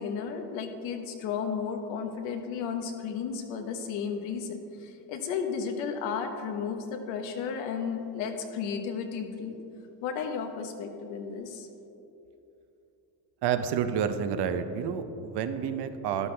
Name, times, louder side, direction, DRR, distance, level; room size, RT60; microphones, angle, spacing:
voice 1, 0.0-9.6 10.0-11.7, left 6 dB, 85° left, 5 dB, 1.3 m, -33 dB
voice 2, 13.4-16.3, right 8 dB, 60° right, 9 dB, 0.9 m, -29 dB
12.5 x 11.0 x 3.4 m, 2.9 s
cardioid pair, 130°, 45 cm